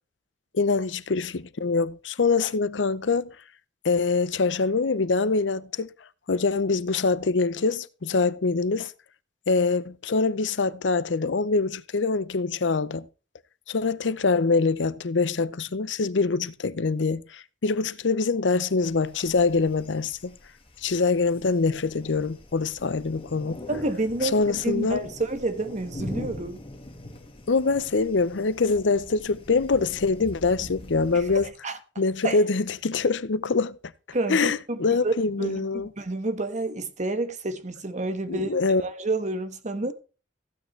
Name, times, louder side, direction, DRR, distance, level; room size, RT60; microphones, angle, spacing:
voice 1, 0.5-3.3 3.8-5.9 6.3-8.9 9.5-13.1 13.7-20.3 20.8-23.6 24.2-25.0 27.5-31.5 32.0-33.8 34.3-35.9 38.3-38.8, left 4 dB, 85° left, 0.7 m, -24 dB
sound 1, 18.8-31.5, left 1 dB, 30° left, 1.9 m, -43 dB
voice 2, 23.7-26.6 31.1-31.8 32.2-32.4 34.1-39.9, right 2 dB, 40° right, 1.4 m, -29 dB
15.5 x 8.9 x 3.2 m
head